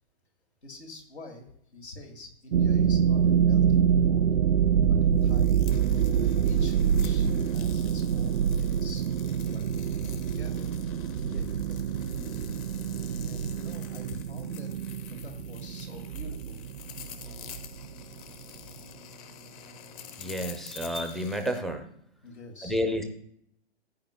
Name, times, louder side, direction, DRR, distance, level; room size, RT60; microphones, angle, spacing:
voice 1, 0.6-4.2 4.9-5.6 6.1-9.1 9.5-9.8 10.2-12.5 13.2-14.7 15.1-16.6 18.6-18.9 22.2-22.8, left 2 dB, 85° left, 2 dB, 2.3 m, -46 dB
sound 1, 2.5-18.4, right 8 dB, 70° right, 0.5 m, -26 dB
sound 2, 5.2-21.6, left 8 dB, 35° left, 0.8 m, -47 dB
voice 2, 20.2-21.9 22.6-23.0, equal, ahead, 5 dB, 0.4 m, -30 dB
15.0 x 8.7 x 2.2 m, 0.68 s
figure-of-eight pair, 125°, 32 cm